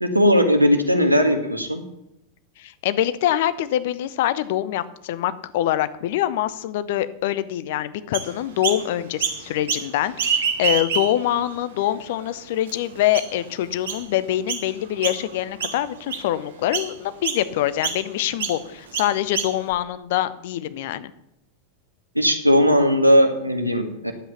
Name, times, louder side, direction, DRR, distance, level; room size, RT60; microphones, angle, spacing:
voice 1, 0.0-1.8 22.1-24.1, equal, 85° right, 6 dB, 1.6 m, -18 dB
voice 2, 2.6-21.1, left 13 dB, 50° left, 14 dB, 0.8 m, -24 dB
Chirp tweet, 8.1-8.8 9.2-9.9 10.1-11.3 11.9-12.0 12.7-12.8 13.1-13.4 13.9-14.0 14.5-14.7 15.0-15.3 15.6-16.3 16.7-16.9 17.2-17.4 17.8-18.0 18.4-18.6 18.9-19.7, right 6 dB, 60° right, 1.8 m, -26 dB
10.5 x 8.2 x 7.1 m, 0.83 s
figure-of-eight pair, 90°, 0 cm